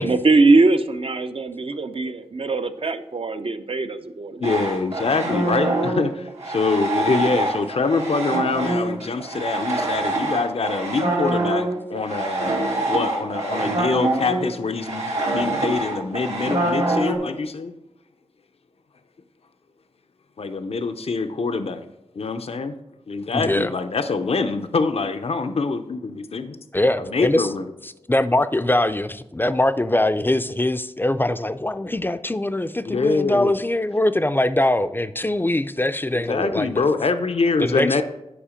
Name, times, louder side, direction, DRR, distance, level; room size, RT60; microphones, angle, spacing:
voice 1, 0.0-4.6, right 3 dB, 55° right, 0.6 m, -21 dB
voice 2, 4.4-12.6 12.9-17.7 20.4-21.9 22.1-22.7 23.1-26.6 27.1-27.6 32.9-33.5 36.1-38.0, left 4 dB, 65° left, 0.6 m, -24 dB
sound 1, 4.4-17.2, right 2 dB, 90° right, 2.1 m, -25 dB
voice 3, 23.3-23.7 26.7-27.5 27.8-36.9 37.6-38.0, left 1 dB, 20° left, 0.4 m, -22 dB
10.0 x 4.9 x 5.1 m
cardioid pair, 50°, 11 cm